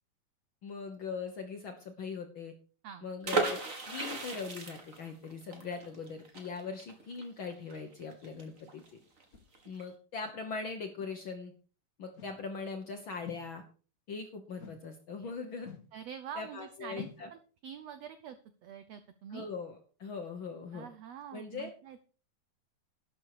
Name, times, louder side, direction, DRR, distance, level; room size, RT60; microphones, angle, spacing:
voice 1, 0.6-2.5 3.0-3.6 3.8-8.8 9.7-11.5 12.0-13.6 14.1-15.7 16.3-17.3 19.3-20.9 21.3-21.7, left 4 dB, 70° left, 5 dB, 1.1 m, -41 dB
sound 1, 3.2-8.9 9.2-9.3 9.5-9.8, right 3 dB, 35° right, 1.5 m, -36 dB
sound 2, 8.5-8.6 9.3-9.5 10.2-10.4 11.0-11.2 12.1-12.4 13.2-13.5 14.6-14.9 15.6-15.9 17.0-17.3, left 6 dB, 45° left, 1.2 m, -48 dB
voice 2, 15.9-18.4 18.6-19.5 20.7-22.0, right 8 dB, 80° right, 11 dB, 1.5 m, -46 dB
12.0 x 8.8 x 4.8 m, 0.39 s
omnidirectional pair, 4.0 m